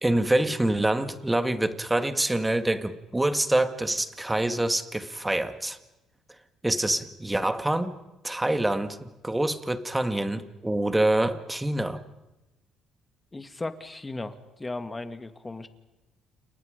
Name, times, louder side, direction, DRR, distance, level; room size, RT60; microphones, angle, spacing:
voice 1, 0.0-5.8 6.6-8.0 8.2-12.0, right 1 dB, 10° right, 10 dB, 2.0 m, -26 dB
voice 2, 13.3-15.7, left 2 dB, 15° left, 10 dB, 2.1 m, -36 dB
29.5 x 29.5 x 5.3 m, 1.0 s
cardioid pair, 90°, 0 cm